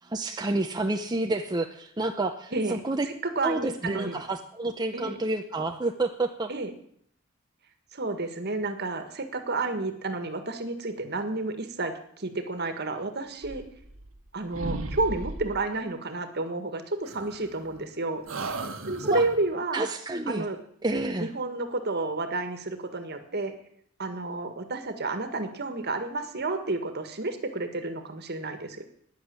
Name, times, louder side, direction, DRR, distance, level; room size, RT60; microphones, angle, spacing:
voice 1, 0.0-3.1 3.4-6.5 19.1-19.2 19.7-20.5 20.8-21.3, right 2 dB, 20° right, 4 dB, 0.7 m, -29 dB
voice 2, 3.3-4.2 4.9-5.2 6.5-6.7 7.9-13.6 14.3-18.2 18.9-19.9 20.3-20.6 21.2-23.5 24.0-28.8, right 2 dB, 55° right, 8 dB, 1.7 m, -31 dB
sound 1, 13.4-14.3 14.5-15.7 17.0-17.9 18.3-19.5, right 2 dB, 90° right, 1.4 m, -36 dB
11.5 x 9.9 x 8.8 m, 0.68 s
head